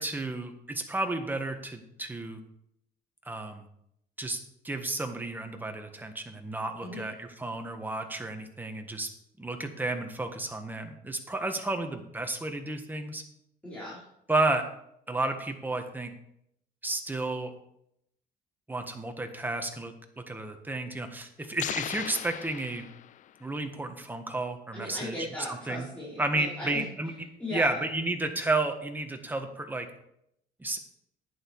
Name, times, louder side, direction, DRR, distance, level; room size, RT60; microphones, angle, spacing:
voice 1, 0.0-2.4 3.2-3.7 4.2-4.4 4.6-9.1 9.4-13.2 14.3-14.6 15.1-16.1 16.8-17.5 18.7-22.9 23.4-25.2 25.5-25.9 26.2-27.1 27.5-29.9 30.6-30.8, right 2 dB, 10° right, 5 dB, 1.6 m, -32 dB
voice 2, 6.8-7.1 13.6-14.0 24.7-26.8 27.4-27.8, left 1 dB, 10° left, -8 dB, 4.8 m, -37 dB
sound 1, 21.6-23.5, left 12 dB, 50° left, 0.4 m, -38 dB
11.0 x 9.4 x 4.8 m, 0.76 s
cardioid pair, 110°, 17 cm